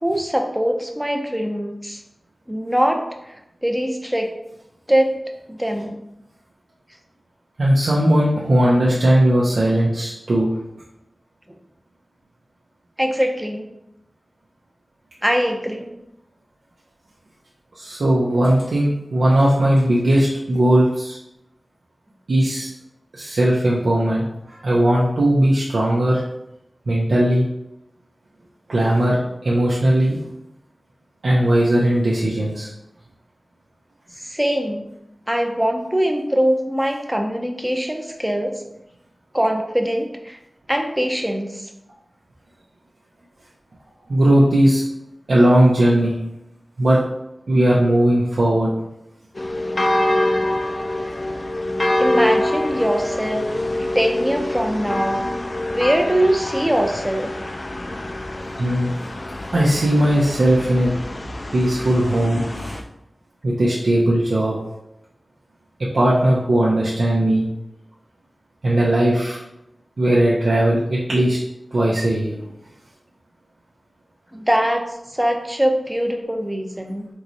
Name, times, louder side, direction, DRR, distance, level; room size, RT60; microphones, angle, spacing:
voice 1, 0.0-2.0 2.5-3.0 3.6-4.3 4.9-5.1 5.5-6.0 9.7-9.8 13.0-13.7 15.2-15.9 34.2-34.8 35.3-38.7 39.3-40.4 40.7-41.6 52.0-53.5 53.8-55.2 55.7-57.3 74.3-77.1, equal, 5° right, 3 dB, 0.5 m, -22 dB
voice 2, 7.6-10.5 17.8-21.2 22.3-22.7 23.1-26.2 26.9-27.4 28.7-30.2 31.2-32.7 44.1-44.8 45.3-46.1 46.8-47.0 47.5-48.7 58.5-58.9 59.5-60.9 61.5-62.8 63.4-64.6 65.9-67.5 68.6-69.4 70.0-71.4 71.7-72.5, right 1 dB, 90° right, -6 dB, 0.6 m, -18 dB
sound 1, 49.3-62.8, left 1 dB, 45° left, 0.3 m, -25 dB
4.6 x 3.1 x 2.6 m, 0.84 s
wide cardioid pair, 75°, 0 cm